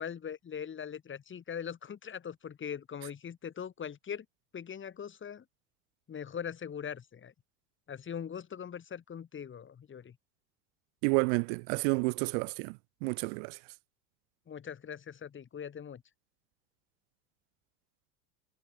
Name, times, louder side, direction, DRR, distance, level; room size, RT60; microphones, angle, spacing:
voice 1, 0.0-4.3 4.5-5.4 6.1-7.3 7.9-10.2 14.5-16.0, left 8 dB, 30° left, 2.5 m, -41 dB
voice 2, 11.0-13.6, right 40 dB or more, 65° right, 1.2 m, -30 dB
hypercardioid pair, 90°, 40 cm